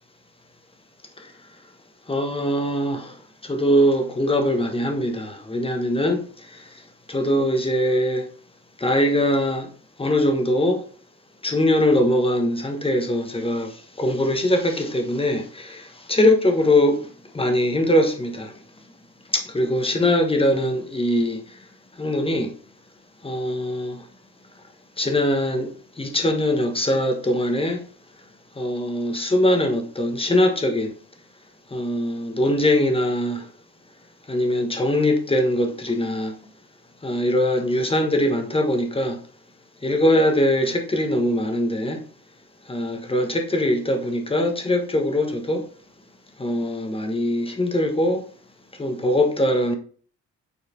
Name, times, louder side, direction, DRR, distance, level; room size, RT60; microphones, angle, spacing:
voice 1, 2.1-3.1 3.4-6.2 7.1-8.3 8.8-9.7 10.0-10.8 11.4-17.0 17.3-18.5 19.3-21.4 22.0-22.5 23.2-24.0 25.0-25.7 26.0-27.8 28.6-30.9 31.7-33.4 34.3-36.4 37.0-39.2 39.8-42.0 42.7-45.7 46.4-48.2 48.8-49.8, left 1 dB, 20° left, 1.3 m, -22 dB
7.0 x 4.3 x 3.8 m
cardioid pair, 90°, 30 cm